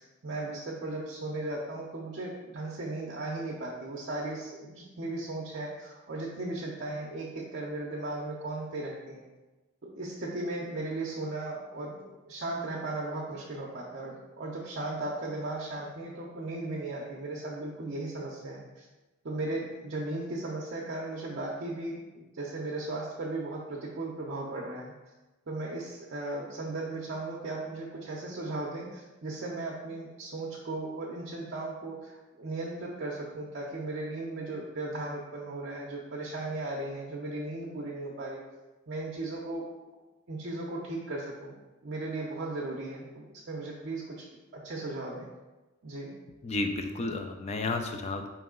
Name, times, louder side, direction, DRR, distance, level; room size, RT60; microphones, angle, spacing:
voice 1, 0.0-9.2 9.8-18.9 19.2-24.9 25.5-38.4 38.9-39.6 40.3-41.6 41.8-44.3 44.5-45.3 45.8-46.1, right 2 dB, 55° right, -3 dB, 0.6 m, -36 dB
voice 2, 46.4-48.3, left 3 dB, 30° left, 6 dB, 0.3 m, -32 dB
4.7 x 3.0 x 3.6 m, 1.1 s
head